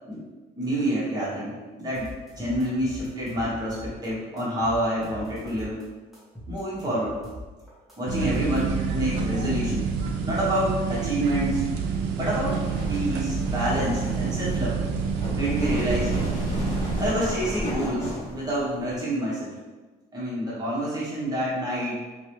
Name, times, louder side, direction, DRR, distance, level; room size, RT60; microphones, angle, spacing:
voice 1, 0.6-5.8 6.5-7.2 8.0-9.9 10.2-11.7 12.2-12.6 12.9-14.8 15.3-16.1 17.0-19.6 20.1-22.0, right 1 dB, 25° right, -7 dB, 1.4 m, -28 dB
sound 1, 1.9-4.1 4.4-5.8 6.1-9.1, equal, ahead, 1.1 m, -41 dB
sound 2, 8.1-17.1, right 5 dB, 90° right, 0.4 m, -28 dB
sound 3, 12.5-19.0, equal, 40° left, 1.3 m, -33 dB
3.0 x 2.7 x 3.1 m, 1.3 s
cardioid pair, 110°, 17 cm